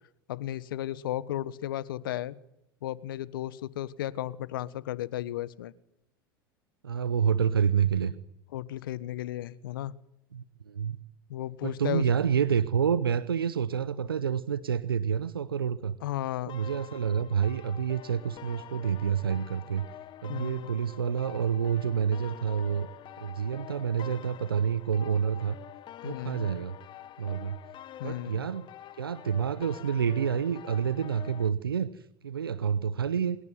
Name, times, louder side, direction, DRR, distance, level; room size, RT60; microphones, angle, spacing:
voice 1, 0.3-2.3 2.8-5.7 8.5-9.9 11.3-12.0 16.0-16.5 20.3-20.7 26.0-26.5 28.0-28.5, left 13 dB, 75° left, 20 dB, 1.4 m, -34 dB
voice 2, 6.8-8.1 10.3-11.0 11.6-16.0 16.5-19.9 20.2-22.9 23.2-25.6 26.0-26.8 27.2-27.6 28.0-28.7 29.0-33.4, right 7 dB, 85° right, 17 dB, 0.9 m, -28 dB
sound 1, 16.5-31.5, left 12 dB, 40° left, 1.6 m, -47 dB
24.5 x 22.5 x 9.6 m, 0.78 s
hypercardioid pair, 80°, 12 cm